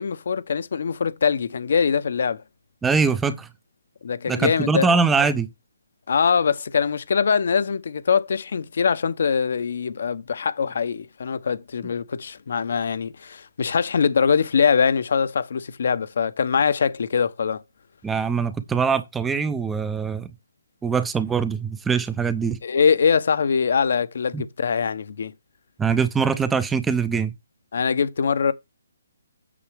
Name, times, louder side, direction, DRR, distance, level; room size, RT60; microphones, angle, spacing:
voice 1, 0.0-2.4 4.0-4.9 6.1-17.6 22.6-25.3 27.7-28.5, left 6 dB, 60° left, 0.8 m, -22 dB
voice 2, 2.8-3.5 4.3-5.5 18.0-20.3 20.8-22.6 24.3-24.4 25.8-27.3, right 5 dB, 10° right, 0.6 m, -22 dB
8.6 x 6.8 x 3.4 m
hypercardioid pair, 150°, 0 cm